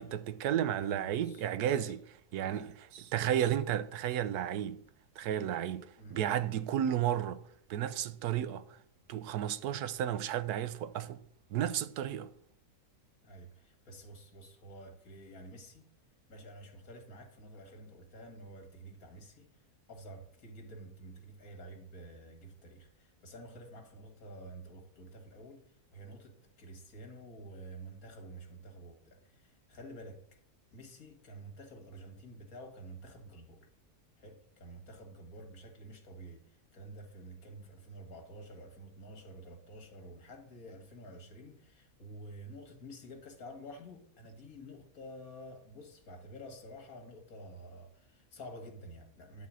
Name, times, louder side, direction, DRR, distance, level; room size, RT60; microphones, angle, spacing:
voice 1, 0.0-2.0 2.3-4.8 5.2-7.4 7.7-8.7 9.1-11.2 11.5-12.3, right 10 dB, 90° right, 1.2 m, -33 dB
voice 2, 0.8-1.9 2.3-2.6 6.0-6.2 13.2-15.9 16.3-19.5 19.9-25.7 25.9-30.4 30.7-33.7 34.2-49.5, right 1 dB, 65° left, 2.1 m, -50 dB
10.5 x 4.1 x 7.4 m
omnidirectional pair, 1.6 m